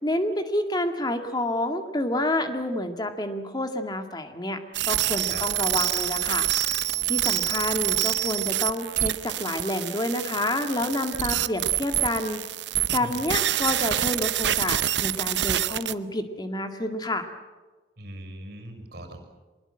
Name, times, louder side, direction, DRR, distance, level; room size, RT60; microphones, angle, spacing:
voice 1, 0.0-4.6 4.9-6.5 7.1-12.4 12.9-17.3, left 1 dB, 25° left, 6 dB, 2.0 m, -28 dB
sound 1, 4.7-15.9, right 12 dB, 75° right, 0.8 m, -26 dB
voice 2, 18.0-19.2, right 1 dB, 60° right, 5 dB, 5.9 m, -40 dB
24.5 x 21.0 x 7.8 m, 1.3 s
head